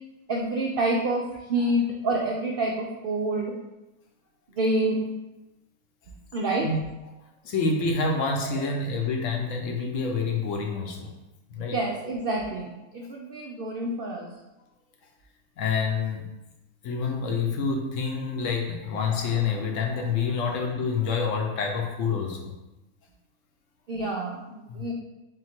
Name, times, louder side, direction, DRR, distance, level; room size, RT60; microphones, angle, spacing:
voice 1, 0.3-1.2 1.5-3.5 4.5-5.0 6.3-6.7 11.6-14.3 20.4-20.5 23.9-24.9, right 1 dB, 75° right, -1 dB, 0.5 m, -27 dB
voice 2, 7.4-11.1 11.5-11.8 15.6-16.3 16.8-22.5 24.7-24.9, left 4 dB, 65° left, 1 dB, 0.9 m, -27 dB
3.8 x 2.6 x 4.2 m, 0.97 s
omnidirectional pair, 1.6 m